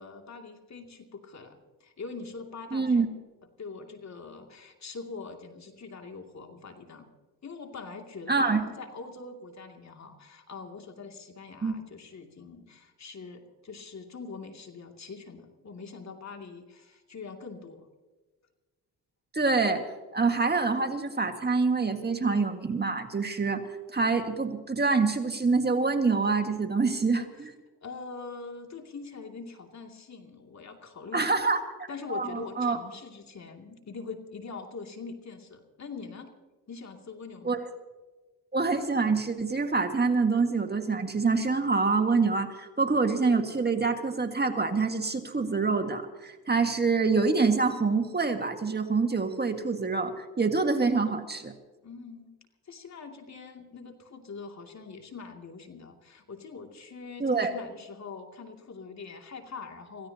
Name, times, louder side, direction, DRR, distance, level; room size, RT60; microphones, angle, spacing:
voice 1, 0.0-3.0 3.6-7.1 7.4-17.9 27.8-31.4 31.9-36.3 36.7-37.6 51.8-52.3 52.6-60.1, left 4 dB, 45° left, 3 dB, 2.6 m, -43 dB
voice 2, 2.7-3.1 8.3-8.6 11.6-11.7 19.3-19.9 20.1-23.6 23.9-27.5 31.1-32.8 37.4-37.6 38.5-51.5 57.2-57.5, right 4 dB, 25° right, 5 dB, 1.8 m, -26 dB
26.5 x 16.0 x 2.9 m, 1.3 s
supercardioid pair, 70°, 39 cm